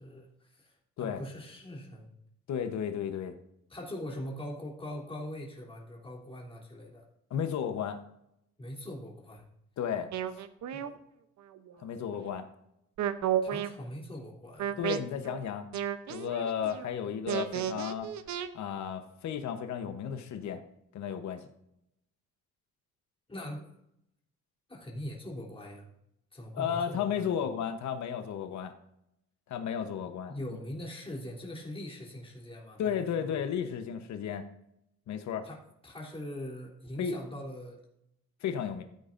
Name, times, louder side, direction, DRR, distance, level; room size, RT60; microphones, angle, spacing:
voice 1, 0.0-2.1 3.7-7.1 8.6-9.4 10.7-11.0 13.4-14.8 23.3-23.7 24.7-25.9 26.3-27.4 30.3-33.4 35.4-37.8, left 1 dB, 20° left, -4 dB, 3.2 m, -42 dB
voice 2, 2.5-3.3 7.3-8.0 9.8-10.1 11.8-12.5 14.8-15.7 16.1-18.1 18.5-20.6 20.9-21.5 26.5-28.7 29.5-30.3 32.8-34.5 35.1-35.5 37.0-37.1 38.4-38.8, left 8 dB, 65° left, 7 dB, 1.0 m, -33 dB
sound 1, 10.1-10.9 11.5-12.1 13.0-13.7 14.6-15.0 15.2-15.4 15.7-16.9 17.3-18.5, right 10 dB, 70° right, 0.8 m, -32 dB
14.5 x 8.8 x 2.6 m, 0.80 s
cardioid pair, 90°, 30 cm